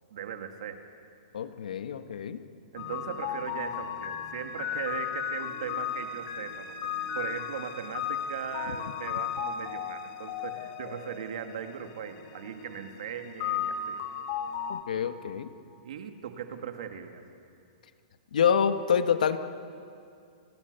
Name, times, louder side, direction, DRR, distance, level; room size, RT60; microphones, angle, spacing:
voice 1, 0.1-0.8 2.7-14.0 15.8-17.2, right 8 dB, 60° right, 6 dB, 2.4 m, -39 dB
voice 2, 1.3-2.4 14.7-15.5 18.3-19.4, left 7 dB, 90° left, 9 dB, 1.5 m, -26 dB
sound 1, 2.8-14.8, left 8 dB, 35° left, 2.0 m, -35 dB
29.5 x 21.0 x 7.0 m, 2.5 s
hypercardioid pair, 170°, 4 cm